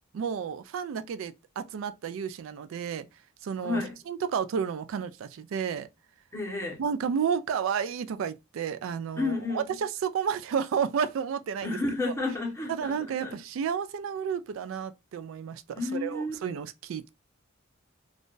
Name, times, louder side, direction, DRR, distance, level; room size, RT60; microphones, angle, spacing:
voice 1, 0.1-3.1 3.4-5.9 6.8-11.8 12.7-17.1, right 7 dB, 80° right, 0.3 m, -31 dB
voice 2, 3.6-4.0 6.3-6.8 9.2-9.8 11.6-13.4 15.7-16.4, left 3 dB, 15° left, 1.0 m, -31 dB
2.5 x 2.4 x 3.6 m
head